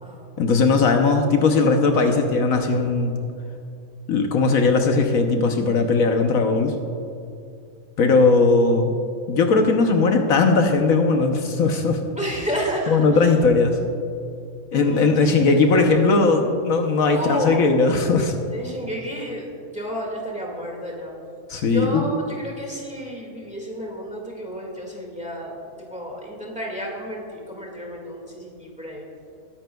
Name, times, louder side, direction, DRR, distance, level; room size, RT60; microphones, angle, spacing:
voice 1, 0.4-3.2 4.1-6.7 8.0-8.9 9.3-12.0 12.9-13.8 14.7-18.3 21.5-22.1, left 4 dB, 70° left, 4 dB, 1.3 m, -18 dB
voice 2, 12.2-13.0 14.7-16.2 17.1-17.6 18.5-21.1 21.7-25.6 25.9-29.0, equal, 5° right, -1 dB, 1.8 m, -31 dB
20.5 x 10.5 x 2.3 m, 2.5 s
omnidirectional pair, 1.5 m